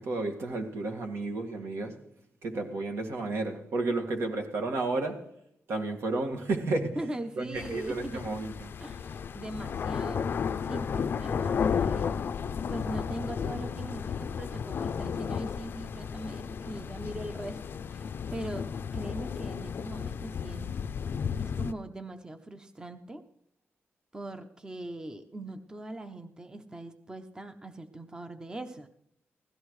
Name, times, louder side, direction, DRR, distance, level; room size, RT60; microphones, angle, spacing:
voice 1, 0.0-2.0 2.4-5.3 5.7-7.0 7.4-8.7, right 2 dB, 75° right, 1.9 m, -32 dB
voice 2, 7.0-8.2 8.8-10.3 10.6-12.1 12.4-17.6 17.9-18.7 18.9-20.8 21.4-23.2 24.1-28.9, right 1 dB, 15° right, 0.7 m, -40 dB
sound 1, 7.5-21.7, left 6 dB, 55° left, 0.4 m, -33 dB
16.5 x 14.0 x 3.2 m
wide cardioid pair, 145°, 4 cm